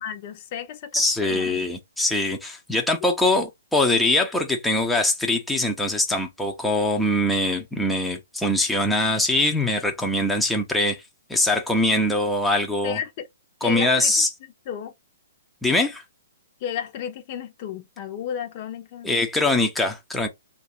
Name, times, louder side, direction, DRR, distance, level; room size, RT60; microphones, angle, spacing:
voice 1, 0.0-0.9 1.2-1.6 12.8-13.3 13.6-14.1 14.7-14.9 16.6-19.1, left 9 dB, 40° left, 0.8 m, -33 dB
voice 2, 0.9-11.0 11.3-13.0 13.6-14.3 15.6-16.0 19.0-20.3, left 2 dB, 5° left, 0.6 m, -22 dB
3.0 x 2.5 x 4.3 m
hypercardioid pair, 130°, 0 cm